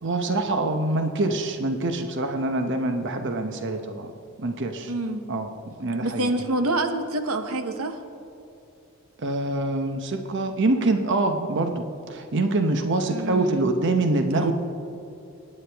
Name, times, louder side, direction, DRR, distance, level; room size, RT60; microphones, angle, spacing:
voice 1, 0.0-4.1 4.4-4.9 5.3-6.3 9.2-14.5, right 2 dB, 60° right, 5 dB, 0.9 m, -25 dB
voice 2, 4.9-5.3 6.0-8.0 13.1-13.7 14.3-14.5, right 2 dB, 85° right, 7 dB, 1.0 m, -27 dB
24.0 x 9.9 x 3.5 m, 2.8 s
head